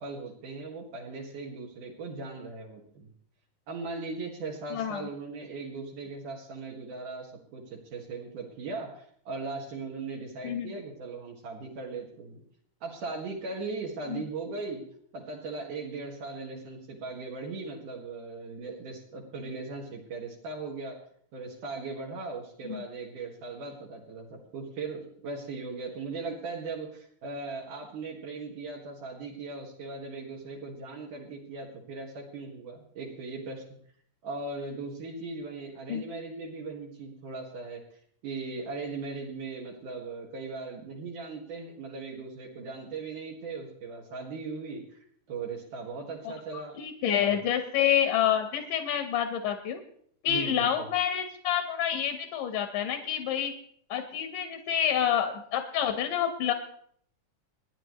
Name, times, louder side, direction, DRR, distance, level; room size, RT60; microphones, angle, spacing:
voice 1, 0.0-3.1 3.7-12.4 12.8-14.8 15.1-21.0 21.3-33.6 34.2-37.8 38.2-46.8 47.0-47.4 50.3-50.9, right 3 dB, 70° right, -2 dB, 3.2 m, -38 dB
voice 2, 4.7-5.1 10.4-10.7 14.1-14.2 22.6-22.8 35.9-36.0 46.2-49.8 50.2-53.5 53.9-56.5, left 9 dB, 75° left, 5 dB, 2.8 m, -28 dB
28.0 x 10.0 x 3.2 m, 0.63 s
omnidirectional pair, 3.8 m